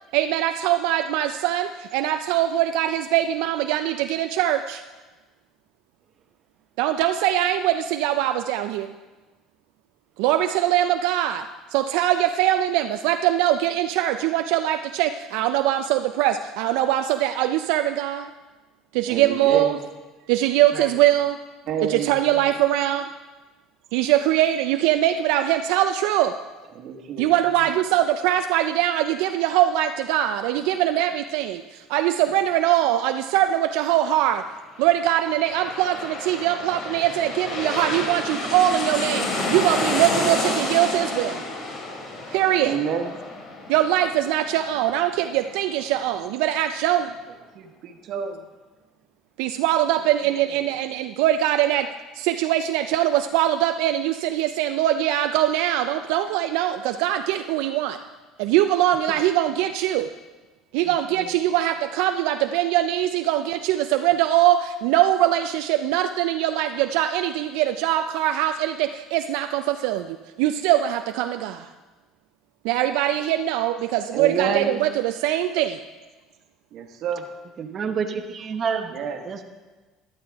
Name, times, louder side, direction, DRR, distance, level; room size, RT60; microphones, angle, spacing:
voice 1, 0.1-4.8 6.8-8.9 10.2-11.4 11.7-18.3 18.9-19.8 20.3-21.4 21.8-23.1 23.9-26.3 27.2-34.4 34.8-41.4 42.3-42.8 43.7-47.1 49.4-51.9 52.1-58.0 58.4-60.1 60.7-71.7 72.6-75.8, right 12 dB, 80° right, 8 dB, 0.4 m, -22 dB
voice 2, 19.1-19.7 21.7-22.1 26.7-27.2 42.6-43.1 47.5-48.4 74.1-74.7 76.7-77.2 79.0-79.2, right 7 dB, 60° right, 5 dB, 1.3 m, -27 dB
sound 1, 34.9-46.3 46.7-46.8, left 2 dB, 50° left, 2.6 m, -30 dB
voice 3, 60.9-61.3 77.6-79.4, right 6 dB, 40° right, 5 dB, 0.9 m, -30 dB
12.0 x 11.0 x 3.5 m, 1.2 s
cardioid pair, 110°, 0 cm